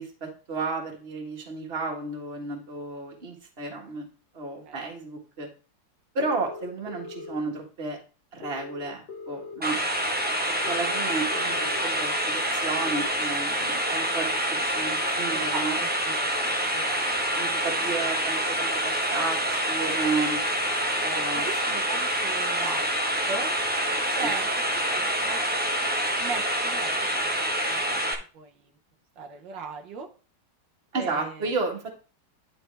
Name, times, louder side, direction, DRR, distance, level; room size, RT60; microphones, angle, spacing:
voice 1, 0.0-4.1 4.3-5.5 6.2-8.0 8.3-9.8 10.5-15.8 17.3-20.5 21.0-21.5 30.9-31.9, right 3 dB, 35° right, 1 dB, 1.8 m, -32 dB
sound 1, 6.2-7.3 8.4-9.6 10.6-11.8 12.9-13.1, left 4 dB, 70° left, 1.9 m, -40 dB
sound 2, 9.6-28.1, right 1 dB, 10° right, 0.4 m, -27 dB
voice 2, 15.3-17.3 21.3-22.8 23.3-23.5 24.2-24.5 24.9-25.4 26.2-27.8 28.3-28.7 29.2-30.1 30.9-31.5, right 5 dB, 80° right, 3 dB, 1.6 m, -38 dB
11.0 x 4.3 x 3.4 m, 0.37 s
omnidirectional pair, 2.0 m